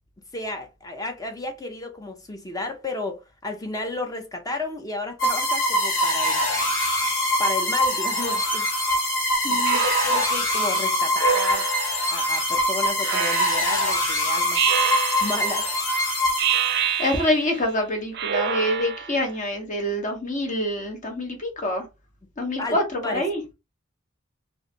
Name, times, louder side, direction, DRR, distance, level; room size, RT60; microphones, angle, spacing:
voice 1, 0.3-6.5 7.4-8.7 9.5-11.7 12.1-14.7 15.2-15.7 22.6-23.3, left 2 dB, 15° left, 0.5 m, -32 dB
sound 1, 5.2-17.0, left 1 dB, 70° left, 1.6 m, -23 dB
voice 2, 9.4-9.8 17.0-21.8 22.4-22.8 23.1-23.4, left 1 dB, 40° left, 0.9 m, -26 dB
Speech synthesizer, 9.7-10.5 11.2-12.1 13.0-13.9 14.5-15.6 16.4-17.6 18.2-19.2, right 8 dB, 55° right, 0.4 m, -27 dB
3.1 x 2.5 x 2.7 m
head